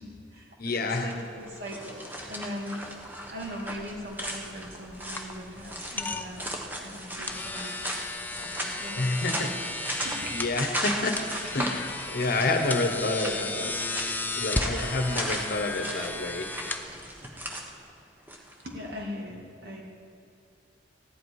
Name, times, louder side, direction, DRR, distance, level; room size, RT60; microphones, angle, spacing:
voice 1, 0.0-3.0 3.3-7.9 8.4-9.7 10.0-10.2 18.6-19.8, equal, 55° right, -2 dB, 2.4 m, -41 dB
voice 2, 0.6-1.1 9.0-9.5 9.8-11.2 11.5-13.7 14.0-16.5, left 2 dB, 50° left, 5 dB, 1.1 m, -29 dB
sound 1, 1.1-18.6, equal, 10° right, 1.1 m, -37 dB
sound 2, 4.2-17.5, left 2 dB, 10° left, 0.5 m, -35 dB
15.5 x 11.0 x 4.8 m, 2.6 s
head